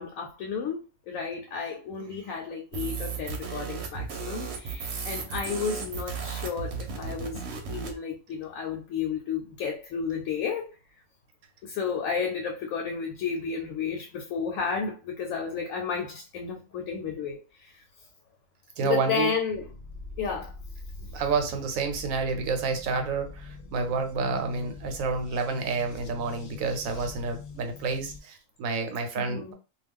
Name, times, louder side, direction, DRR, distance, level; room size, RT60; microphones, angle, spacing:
voice 1, 0.0-7.4 7.7-10.7 11.6-17.8 18.8-19.7 20.2-20.5 29.2-29.5, left 6 dB, 85° left, 1.0 m, -32 dB
voice 2, 1.6-2.2 18.8-19.3 21.0-29.5, right 4 dB, 90° right, 1.1 m, -29 dB
sound 1, 2.7-8.0, right 5 dB, 60° right, 0.9 m, -35 dB
sound 2, 19.5-28.2, left 3 dB, 70° left, 0.4 m, -43 dB
2.3 x 2.2 x 3.5 m
omnidirectional pair, 1.4 m